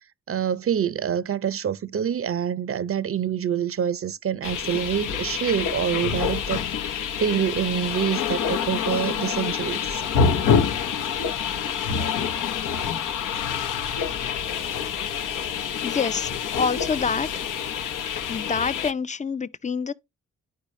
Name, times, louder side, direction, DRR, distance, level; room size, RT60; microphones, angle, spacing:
voice 1, 0.3-6.6 7.2-10.0, right 8 dB, 40° right, 0.6 m, -26 dB
sound 1, 4.4-18.9, left 7 dB, 70° left, 0.8 m, -27 dB
voice 2, 15.8-17.3 18.3-19.9, left 5 dB, 20° left, 0.5 m, -27 dB
10.5 x 4.7 x 3.1 m
supercardioid pair, 45°, 33 cm